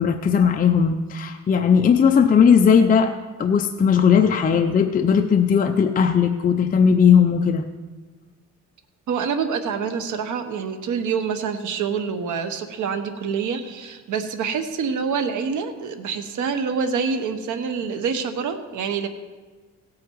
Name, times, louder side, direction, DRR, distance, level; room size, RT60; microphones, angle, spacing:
voice 1, 0.0-3.1 3.4-7.6, left 7 dB, 30° left, 6 dB, 0.5 m, -17 dB
voice 2, 9.1-19.1, right 6 dB, 80° right, 8 dB, 1.1 m, -26 dB
16.5 x 8.7 x 4.6 m, 1.4 s
cardioid pair, 160°, 30 cm